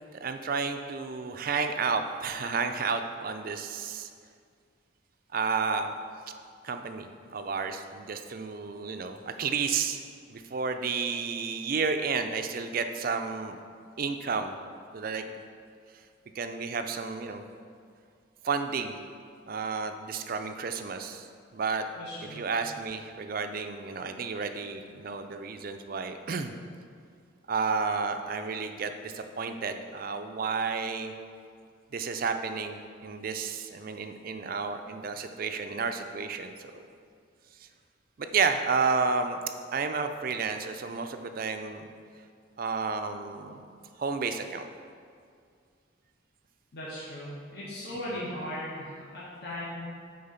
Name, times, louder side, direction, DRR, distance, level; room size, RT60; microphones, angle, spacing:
voice 1, 0.2-4.1 5.3-5.9 6.6-10.0 10.3-13.6 14.0-14.5 14.9-15.2 16.4-17.4 18.4-19.0 19.5-21.9 22.3-26.5 27.5-31.1 31.9-36.8 37.6-37.7 38.2-39.4 39.7-41.8 42.6-43.6 44.0-44.7, right 5 dB, 45° right, 7 dB, 0.4 m, -31 dB
voice 2, 22.0-22.5 46.7-49.8, left 1 dB, 55° left, -9 dB, 1.6 m, -38 dB
8.7 x 4.0 x 5.6 m, 2.2 s
head